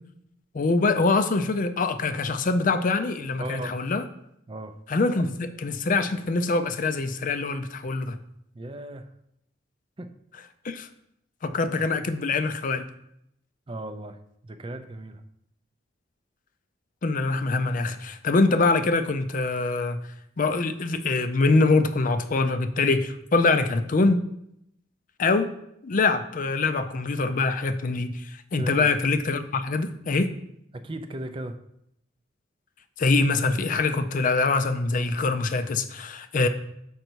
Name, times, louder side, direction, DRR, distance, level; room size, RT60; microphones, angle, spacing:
voice 1, 0.5-4.0 4.9-8.2 10.6-10.9 11.4-12.8 17.0-20.0 20.4-24.2 25.2-25.5 25.8-28.3 28.5-30.3 33.0-36.5, left 3 dB, 45° left, 9 dB, 0.5 m, -24 dB
voice 2, 3.4-3.8 4.5-4.8 8.5-9.1 10.0-10.2 13.7-15.2 28.5-28.9 30.7-31.6, right 1 dB, 30° right, 8 dB, 0.5 m, -37 dB
6.5 x 5.3 x 4.5 m, 0.77 s
head